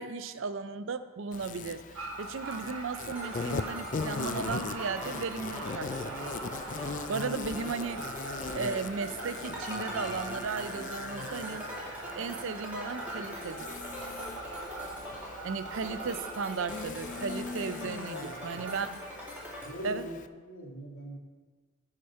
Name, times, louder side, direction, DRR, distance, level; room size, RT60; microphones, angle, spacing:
voice 1, 0.0-1.8 2.2-6.3 7.1-8.0 8.5-11.6 12.1-13.7 15.4-19.0 19.8-20.1, right 5 dB, 60° right, 12 dB, 0.5 m, -35 dB
Insect, 1.3-20.3, left 4 dB, 35° left, 0.3 m, -41 dB
sound 1, 1.9-18.7, right 3 dB, 85° right, 1.1 m, -43 dB
sound 2, 3.1-19.7, equal, 5° right, 2.9 m, -42 dB
voice 2, 19.6-20.1 20.4-21.2, left 1 dB, 85° left, -1 dB, 2.2 m, -41 dB
13.0 x 4.9 x 5.6 m, 1.4 s
head